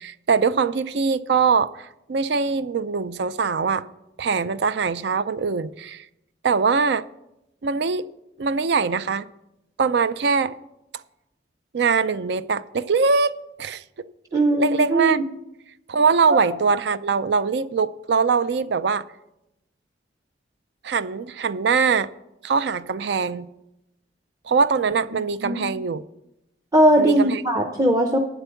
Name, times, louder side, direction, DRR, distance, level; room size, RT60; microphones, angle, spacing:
voice 1, 0.0-3.9 4.2-6.0 6.4-7.0 7.6-8.1 8.4-9.2 9.8-10.5 11.7-13.8 14.3-15.2 15.9-19.0 20.8-22.1 22.4-23.5 24.4-26.0 27.0-27.4, right 5 dB, 65° right, 0.4 m, -22 dB
voice 2, 14.3-15.2 16.3-16.4 25.4-25.7 26.7-28.2, right 1 dB, 20° right, 0.6 m, -19 dB
9.0 x 8.0 x 7.0 m
head